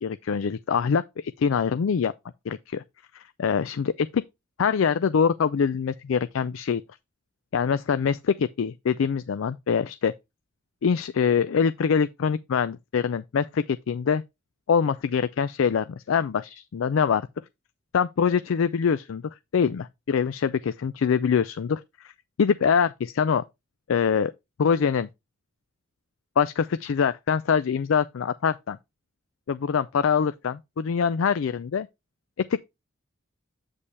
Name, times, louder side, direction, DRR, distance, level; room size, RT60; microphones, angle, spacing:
voice 1, 0.0-2.1 2.5-2.8 3.1-4.2 4.6-6.8 7.5-10.1 10.8-14.2 14.7-17.3 17.9-22.1 22.4-23.4 23.9-24.3 24.6-25.1 26.4-28.8 29.5-31.9 32.4-32.7, left 6 dB, 85° left, 0.4 m, -24 dB
8.2 x 5.4 x 3.2 m
head